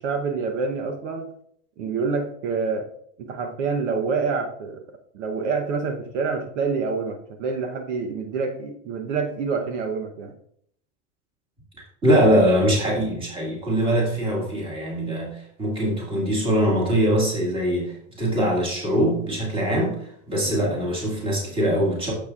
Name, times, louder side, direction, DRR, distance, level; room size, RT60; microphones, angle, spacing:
voice 1, 0.0-1.3 1.8-2.9 3.2-4.8 5.1-10.3 20.5-20.8, right 5 dB, 65° right, 4 dB, 1.0 m, -27 dB
voice 2, 12.0-22.1, equal, 15° right, -3 dB, 2.0 m, -22 dB
10.0 x 7.0 x 2.4 m, 0.68 s
supercardioid pair, 175°, 39 cm